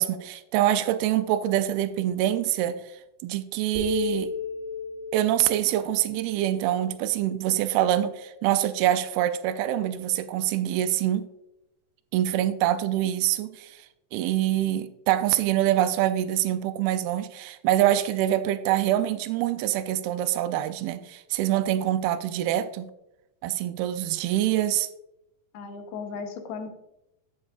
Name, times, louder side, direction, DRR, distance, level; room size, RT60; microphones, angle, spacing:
voice 1, 0.0-4.3 5.1-11.3 12.1-13.9 14.1-22.9 23.4-24.9, right 12 dB, 85° right, 10 dB, 2.2 m, -25 dB
sound 1, 3.7-7.3, left 4 dB, 15° right, 1.0 m, -34 dB
voice 2, 25.5-26.7, left 5 dB, 75° left, 5 dB, 2.7 m, -36 dB
9.4 x 8.4 x 2.4 m, 0.87 s
omnidirectional pair, 4.8 m